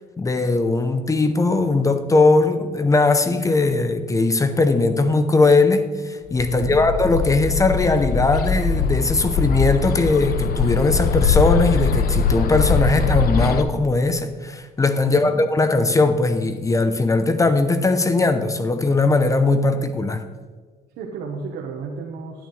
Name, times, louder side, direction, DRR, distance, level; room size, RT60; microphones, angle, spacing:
voice 1, 0.2-20.2, left 3 dB, 20° left, 9 dB, 0.7 m, -19 dB
Bird, 6.3-13.6, left 5 dB, 60° left, 0.7 m, -22 dB
voice 2, 15.0-15.3 20.9-22.5, right 5 dB, 80° right, 0 dB, 1.2 m, -32 dB
10.5 x 9.3 x 3.3 m, 1.5 s
cardioid pair, 110°, 17 cm